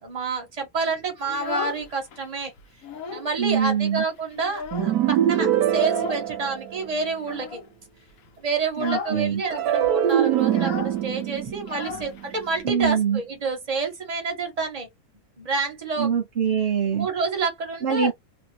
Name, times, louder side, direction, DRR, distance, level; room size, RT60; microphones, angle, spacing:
voice 1, 0.0-2.5 3.1-7.6 8.4-14.9 15.4-16.1 16.9-18.1, right 4 dB, 30° right, 1.0 m, -28 dB
Child speech kid speaking, 1.2-2.2 2.6-3.4 3.6-3.7 4.1-5.2 5.8-6.3 7.2-7.7 8.1-8.3 8.7-9.2 9.5-9.6 9.8-12.6, left 6 dB, 70° left, 1.1 m, -36 dB
voice 2, 3.4-4.0 8.8-9.4 12.6-13.2 16.0-17.1 17.8-18.1, right 7 dB, 60° right, 0.7 m, -23 dB
sound 1, 4.7-7.1 9.5-12.8, right 10 dB, 85° right, 1.2 m, -24 dB
2.7 x 2.6 x 2.8 m
omnidirectional pair, 1.6 m